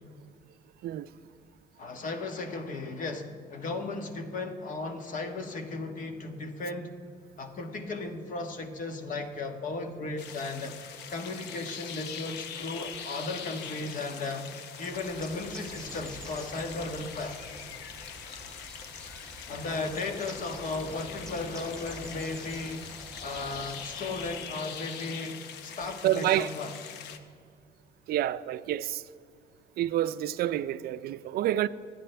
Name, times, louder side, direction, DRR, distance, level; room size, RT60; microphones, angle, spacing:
voice 1, 1.8-6.9 7.4-10.7 11.1-14.5 14.8-17.4 19.5-22.9 23.2-26.7, left 3 dB, 50° left, 1.4 m, -35 dB
sound 1, 10.2-27.2, left 8 dB, 85° left, 0.9 m, -43 dB
Bird, 14.9-24.6, right 1 dB, 5° left, 2.0 m, -48 dB
voice 2, 26.0-26.5 28.1-29.0 29.8-31.7, right 13 dB, 65° right, 0.5 m, -28 dB
24.0 x 9.6 x 3.4 m
cardioid pair, 110°, 17 cm